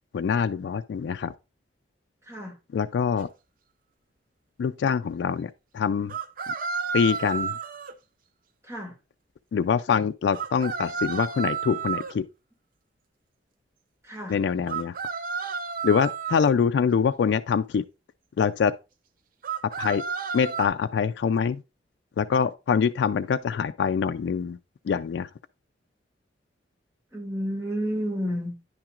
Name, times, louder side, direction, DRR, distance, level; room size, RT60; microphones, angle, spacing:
voice 1, 0.1-1.3 2.7-3.3 4.6-6.1 6.9-7.6 9.5-12.2 14.3-14.9 15.8-17.8 18.4-18.7 19.6-20.0 20.3-21.6 22.2-24.6 24.9-25.3, left 6 dB, 70° left, 0.3 m, -24 dB
voice 2, 2.2-2.5 8.6-8.9 14.0-14.4 27.1-28.5, equal, 15° right, 2.1 m, -31 dB
sound 1, 3.2-3.3 6.1-7.9 10.3-12.1 14.7-16.5 19.4-20.7, right 6 dB, 50° right, 0.6 m, -31 dB
9.9 x 5.9 x 2.4 m
head